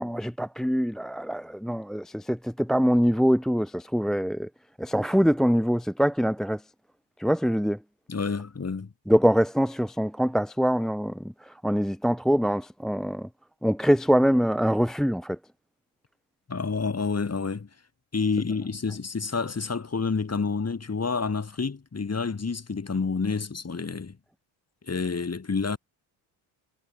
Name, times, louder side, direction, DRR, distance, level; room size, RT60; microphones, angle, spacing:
voice 1, 0.0-4.5 4.8-6.6 7.2-7.8 9.1-13.3 13.6-15.4, equal, ahead, 0.7 m, -24 dB
voice 2, 8.1-8.9 16.5-17.7 18.1-24.2 24.9-25.8, left 4 dB, 30° left, 5.1 m, -29 dB
supercardioid pair, 70°, 50 cm